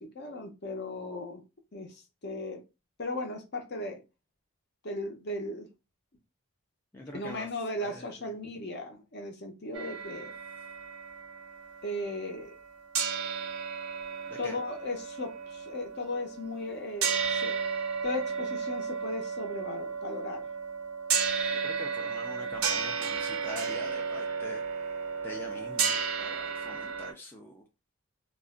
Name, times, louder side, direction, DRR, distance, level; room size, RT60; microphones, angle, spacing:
voice 1, 0.0-1.4 1.7-2.6 3.0-4.0 4.8-5.7 7.1-10.3 11.8-12.5 14.4-17.6 18.0-20.5, left 2 dB, 50° left, 0.6 m, -37 dB
voice 2, 6.9-7.5 7.8-8.3 14.3-14.6 21.5-24.9 25.2-27.6, left 2 dB, 10° left, 0.3 m, -45 dB
sound 1, 9.7-12.7 12.9-27.1, right 6 dB, 75° right, 0.6 m, -33 dB
2.4 x 2.1 x 3.6 m
head